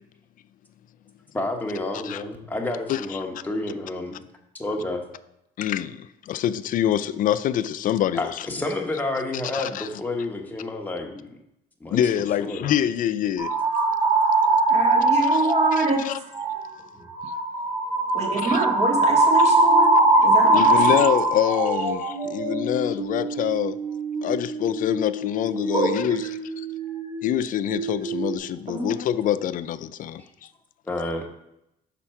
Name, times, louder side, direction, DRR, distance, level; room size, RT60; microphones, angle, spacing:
voice 1, 1.3-4.2 4.5-5.0 8.1-11.4 11.8-12.0 12.4-12.7 17.0-17.1 20.7-20.8 30.9-31.3, left 2 dB, 10° left, 1.0 m, -30 dB
voice 2, 2.9-3.2 5.6-8.5 9.5-9.9 11.9-13.5 15.2-16.2 17.2-17.3 18.4-18.7 19.4-19.5 20.5-23.8 24.2-26.2 26.6-26.7 27.2-30.2, left 10 dB, 55° left, 0.4 m, -25 dB
sound 1, 13.4-16.0 16.3-16.6 17.1-27.4 27.7-28.4, right 2 dB, 25° right, 1.7 m, -22 dB
voice 3, 14.7-16.0 18.1-21.0 25.7-25.9 28.7-28.9, right 3 dB, 40° right, 1.9 m, -26 dB
5.9 x 4.3 x 5.7 m
cardioid pair, 110°, 17 cm